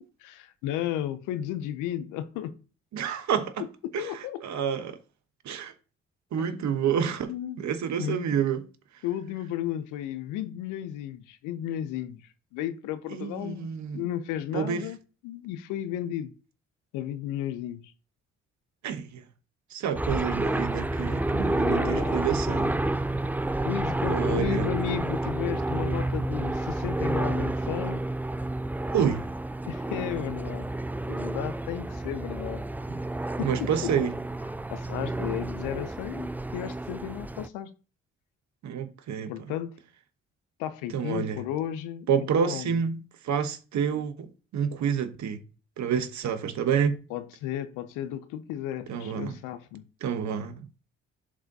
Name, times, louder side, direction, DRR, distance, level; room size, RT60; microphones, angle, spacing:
voice 1, 0.2-2.6 3.8-4.4 6.4-6.5 7.3-7.6 8.0-8.4 9.0-12.2 12.5-15.0 15.2-16.3 16.9-17.8 21.6-22.3 23.6-28.0 29.7-30.7 31.1-32.6 33.4-34.1 34.7-37.7 39.3-39.8 40.6-42.8 47.1-49.8, left 11 dB, 85° left, 0.6 m, -34 dB
voice 2, 2.9-3.6 3.9-5.0 5.4-5.7 6.3-7.3 7.6-8.6 13.1-14.1 14.5-14.9 18.8-19.2 19.7-22.8 24.1-24.7 28.9-29.2 32.9-33.0 33.4-34.1 38.6-39.3 40.9-41.4 42.1-44.3 44.5-45.4 45.8-47.0 48.9-49.4 50.0-50.8, right 7 dB, 65° right, 1.0 m, -28 dB
sound 1, 19.9-37.5, right 2 dB, 5° right, 0.3 m, -30 dB
11.0 x 3.8 x 2.7 m
supercardioid pair, 50°, 30 cm